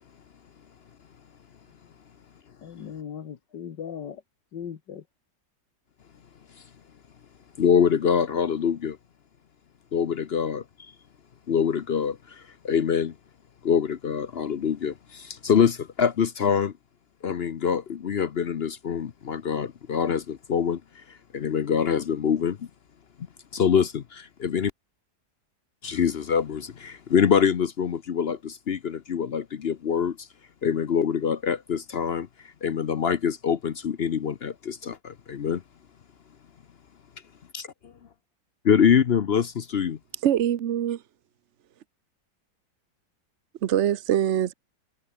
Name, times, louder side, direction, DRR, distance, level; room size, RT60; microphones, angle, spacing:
voice 1, 2.6-4.2 4.5-5.0, left 8 dB, 90° left, 2.1 m, -38 dB
voice 2, 7.6-9.0 9.9-10.9 11.5-13.1 13.6-16.7 17.2-22.7 23.5-24.7 25.8-30.3 30.6-35.6 37.5-37.9 38.6-40.0, left 7 dB, 50° left, 0.7 m, -25 dB
voice 3, 40.2-41.0 43.6-44.5, right 10 dB, 50° right, 1.0 m, -23 dB
omnidirectional pair, 1.8 m